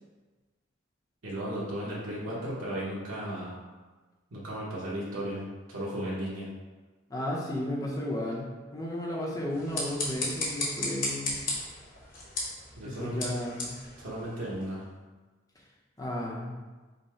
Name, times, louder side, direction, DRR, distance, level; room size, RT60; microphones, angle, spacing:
voice 1, 1.2-3.6 4.3-6.5 12.7-13.3 14.0-14.8, right 1 dB, 85° right, -7 dB, 1.0 m, -35 dB
voice 2, 7.1-8.5 8.7-11.4 12.8-13.8 16.0-16.5, left 1 dB, 20° left, -3 dB, 0.7 m, -33 dB
sound 1, 9.5-14.8, left 2 dB, 45° left, 1.1 m, -35 dB
5.4 x 2.2 x 4.4 m, 1.3 s
head